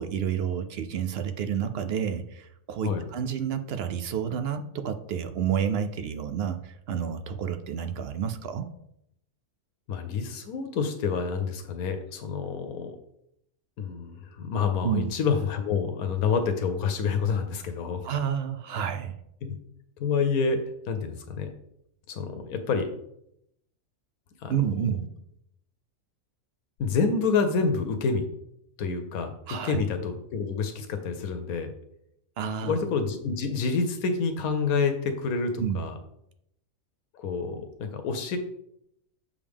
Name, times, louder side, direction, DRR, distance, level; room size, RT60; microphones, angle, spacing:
voice 1, 0.0-8.7 14.8-15.1 18.0-19.1 24.5-25.1 29.5-29.8 32.4-32.8 35.6-35.9, right 8 dB, 65° right, 9 dB, 0.6 m, -30 dB
voice 2, 9.9-13.0 13.8-18.1 19.4-19.6 20.0-21.5 22.1-22.9 24.4-24.6 26.8-28.3 28.8-29.3 29.6-31.7 32.6-35.9 37.1-38.4, left 5 dB, 85° left, 7 dB, 1.2 m, -28 dB
6.8 x 5.1 x 3.5 m, 0.77 s
omnidirectional pair, 1.5 m